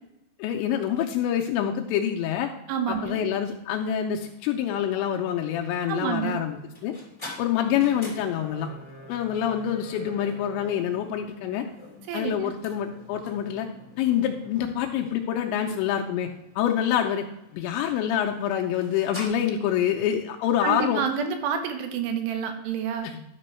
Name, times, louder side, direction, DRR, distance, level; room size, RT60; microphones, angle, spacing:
voice 1, 0.4-2.5 2.9-6.6 6.8-6.9 7.4-8.7 9.1-11.6 12.1-13.7 14.0-16.3 16.6-17.2 17.5-21.0 23.0-23.2, left 9 dB, 85° left, 2 dB, 2.8 m, -26 dB
voice 2, 2.7-3.2 5.9-6.4 12.1-12.5 20.6-23.1, right 7 dB, 75° right, 6 dB, 2.8 m, -28 dB
sound 1, 4.2-19.2, left 1 dB, 15° left, 0.9 m, -47 dB
12.0 x 6.1 x 4.4 m, 0.87 s
omnidirectional pair, 5.4 m